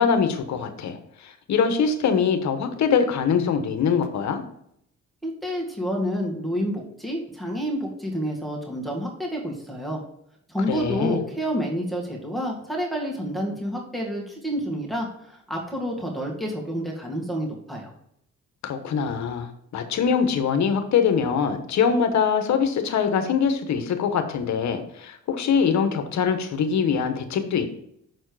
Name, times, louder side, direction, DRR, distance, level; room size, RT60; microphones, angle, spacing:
voice 1, 0.0-4.4 10.7-11.2 18.6-27.7, left 6 dB, 65° left, 8 dB, 1.1 m, -23 dB
voice 2, 5.2-10.0 10.5-17.9, equal, ahead, -2 dB, 1.9 m, -29 dB
6.5 x 4.4 x 4.8 m, 0.72 s
cardioid pair, 90°, 30 cm